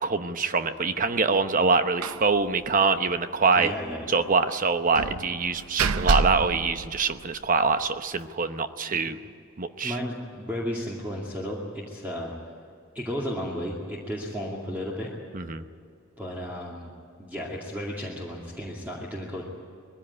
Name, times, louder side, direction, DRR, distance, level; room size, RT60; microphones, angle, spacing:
voice 1, 0.0-3.7 4.1-9.2 9.6-10.0 15.3-15.6, right 4 dB, 40° right, 10 dB, 0.9 m, -24 dB
Slam, 2.0-2.3 2.6-2.7 3.0-3.2 4.9-7.5, right 4 dB, 85° right, 0.7 m, -28 dB
voice 2, 3.6-4.2 9.8-12.3 12.9-15.1 16.2-16.9 17.2-19.5, equal, 10° right, -4 dB, 2.4 m, -33 dB
21.0 x 15.5 x 9.8 m, 2.4 s
head